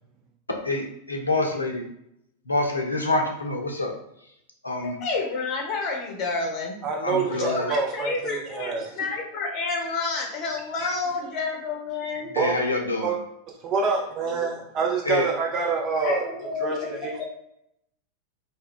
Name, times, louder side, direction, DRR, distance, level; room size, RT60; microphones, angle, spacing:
voice 1, 0.6-1.8 2.5-3.9 4.6-5.0 7.0-7.7 12.3-13.1 15.1-15.3, left 2 dB, 80° left, 2 dB, 0.5 m, -26 dB
voice 2, 4.8-6.8 7.1-12.3 16.0-17.2, left 4 dB, 40° left, 0 dB, 0.8 m, -30 dB
voice 3, 6.8-8.9 10.8-10.9 12.4-12.6 13.0-13.2 13.6-16.2 16.6-17.2, right 4 dB, 35° right, -1 dB, 0.5 m, -26 dB
2.2 x 2.2 x 3.6 m, 0.78 s
figure-of-eight pair, 90°, 0 cm